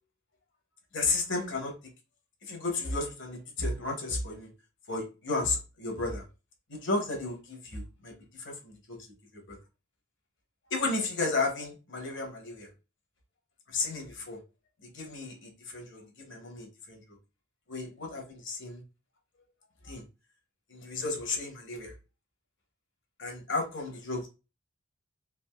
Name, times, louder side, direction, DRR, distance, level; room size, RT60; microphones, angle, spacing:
voice 1, 0.9-1.7 2.5-4.5 4.9-6.2 6.7-9.1 9.3-9.6 10.7-12.7 13.7-14.4 14.9-17.0 17.7-18.8 19.8-20.0 20.7-21.9 23.2-24.3, left 3 dB, 60° left, 1.0 m, -33 dB
3.3 x 2.5 x 2.2 m
head